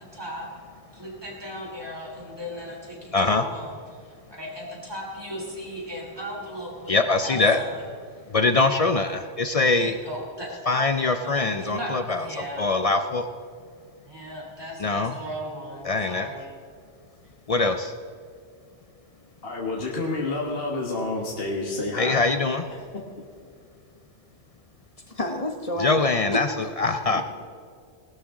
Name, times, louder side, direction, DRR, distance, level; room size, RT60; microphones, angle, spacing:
voice 1, 0.1-0.5 0.9-3.8 4.3-7.9 9.8-10.5 11.2-12.7 13.6-13.7 14.0-16.4, equal, 20° right, -2 dB, 3.3 m, -37 dB
voice 2, 3.1-3.5 6.9-7.6 8.3-10.0 10.7-13.3 14.8-15.1 15.8-16.3 17.5-17.9 22.0-22.6 25.8-26.5 26.8-27.2, left 3 dB, 65° left, 8 dB, 0.3 m, -23 dB
voice 3, 19.4-22.2 22.7-23.0, left 2 dB, 50° left, -2 dB, 1.7 m, -29 dB
voice 4, 25.1-26.1 26.3-27.2, left 1 dB, 30° left, 5 dB, 1.1 m, -31 dB
19.0 x 12.0 x 3.7 m, 2.3 s
omnidirectional pair, 1.3 m